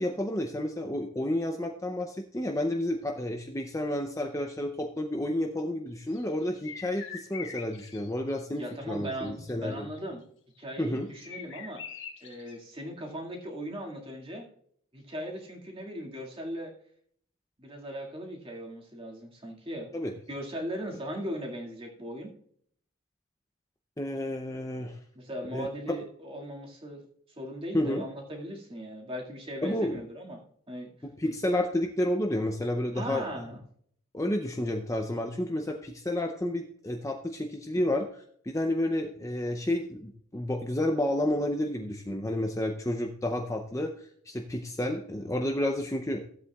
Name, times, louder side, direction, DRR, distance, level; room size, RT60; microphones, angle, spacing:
voice 1, 0.0-9.9 10.8-11.1 19.9-20.1 24.0-25.0 25.5-26.0 27.7-28.1 29.6-30.0 31.0-33.3 34.1-38.1 38.4-46.2, left 1 dB, 15° left, 3 dB, 0.5 m, -30 dB
sound 1, 6.0-8.7 9.0-10.0 11.2-12.6, left 6 dB, 55° left, 1.3 m, -43 dB
voice 2, 8.5-10.2 10.6-11.8 12.2-14.5 14.9-16.7 17.6-19.9 20.3-22.3 25.1-27.0 27.4-30.9 32.9-33.6, equal, 25° right, -1 dB, 2.0 m, -38 dB
15.5 x 8.2 x 2.3 m, 0.63 s
head